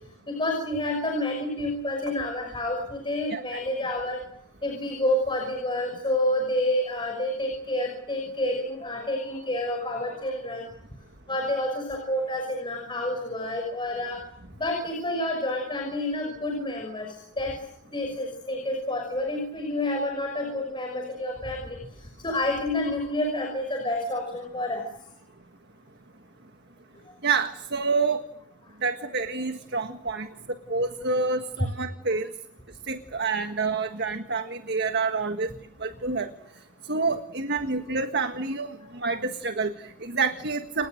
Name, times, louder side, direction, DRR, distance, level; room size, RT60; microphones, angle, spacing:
voice 1, 0.3-4.2 4.6-10.6 11.3-14.2 14.6-17.5 17.9-21.8 22.2-24.8 31.6-31.7, left 1 dB, 25° left, 2 dB, 5.9 m, -29 dB
voice 2, 3.3-3.6 27.2-28.3 28.8-30.3 30.7-32.3 32.9-35.5 35.8-36.3 36.8-40.9, right 4 dB, 50° right, 7 dB, 1.6 m, -28 dB
29.5 x 27.5 x 6.5 m, 0.74 s
head